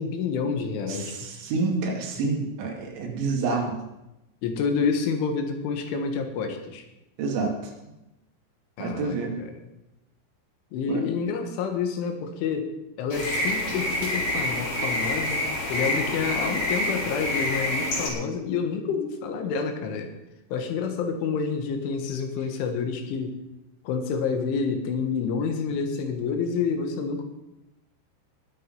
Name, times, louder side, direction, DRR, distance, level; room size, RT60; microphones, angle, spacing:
voice 1, 0.0-1.3 4.4-6.8 8.8-9.5 10.7-12.7 13.0-15.4 15.7-20.1 20.5-23.4 23.9-27.2, left 5 dB, 80° left, 6 dB, 4.0 m, -28 dB
voice 2, 0.9-3.9 7.2-7.7 8.8-9.4 10.9-11.0, right 4 dB, 75° right, 1 dB, 4.7 m, -28 dB
sound 1, 13.1-18.1, left 1 dB, 40° left, 4.4 m, -27 dB
20.5 x 7.8 x 5.4 m, 0.92 s
omnidirectional pair, 5.4 m